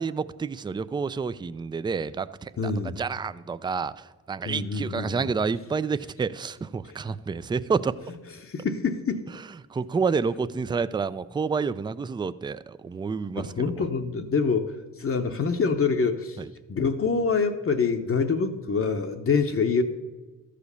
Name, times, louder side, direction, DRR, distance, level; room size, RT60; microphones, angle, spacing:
voice 1, 0.0-7.9 9.7-13.8 16.4-16.5, right 5 dB, 15° right, 15 dB, 0.3 m, -29 dB
voice 2, 2.6-3.0 4.4-5.3 6.8-7.0 8.4-9.2 13.3-16.4 16.7-19.8, left 5 dB, 45° left, 5 dB, 0.8 m, -26 dB
13.0 x 5.1 x 6.7 m, 1.2 s
cardioid pair, 65°, 32 cm